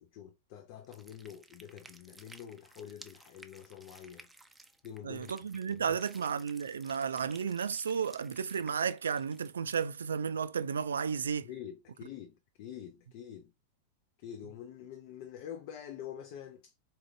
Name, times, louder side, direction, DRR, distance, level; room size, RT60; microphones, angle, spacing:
voice 1, 0.0-4.3 4.8-6.3 11.4-13.5 14.2-16.7, left 9 dB, 45° left, 0.5 m, -47 dB
sound 1, 0.8-9.8, right 2 dB, 5° right, 0.5 m, -57 dB
voice 2, 5.0-11.5, right 6 dB, 70° right, 0.3 m, -33 dB
4.0 x 3.8 x 2.6 m
figure-of-eight pair, 90°, 0 cm